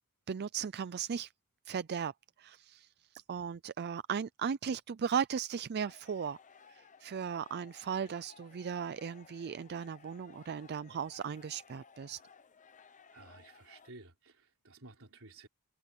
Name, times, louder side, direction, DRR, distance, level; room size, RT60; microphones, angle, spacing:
voice 1, 0.3-1.3 1.7-2.1 2.4-6.4 6.7-12.2, right 7 dB, 50° right, 0.4 m, -37 dB
sound 1, 5.8-13.9, left 6 dB, 35° left, 0.7 m, -59 dB
voice 2, 13.1-15.5, right 3 dB, 65° right, 4.5 m, -54 dB
head